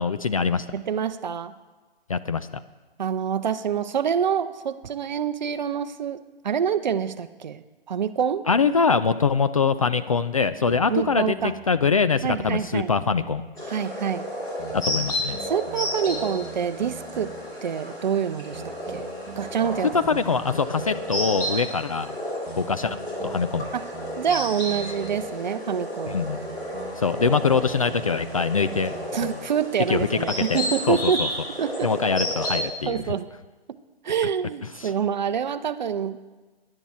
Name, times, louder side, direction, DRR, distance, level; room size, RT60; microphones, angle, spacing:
voice 1, 0.0-0.7 2.1-2.5 8.5-11.4 11.7-13.4 14.7-15.4 19.9-22.2 22.5-23.7 26.1-26.4 26.9-28.9 29.2-29.5 29.9-30.1 30.4-30.6 30.9-31.3 31.8-33.0 34.8-34.9, left 5 dB, 35° left, 11 dB, 0.4 m, -23 dB
voice 2, 0.7-1.5 3.0-8.5 10.9-11.5 12.2-12.9 13.7-14.3 15.4-17.3 17.6-19.0 19.4-19.9 23.7-26.4 29.1-31.3 31.6-31.9 32.9-33.3 34.0-36.3, right 7 dB, 45° right, 12 dB, 0.7 m, -26 dB
sound 1, 10.7-13.7 14.6-17.6 18.5-21.5 22.5-25.5 26.4-29.1, right 6 dB, 20° right, 1.4 m, -44 dB
sound 2, 13.6-32.6, equal, 10° left, 3.0 m, -32 dB
18.5 x 11.0 x 4.3 m, 1.3 s
figure-of-eight pair, 140°, 31 cm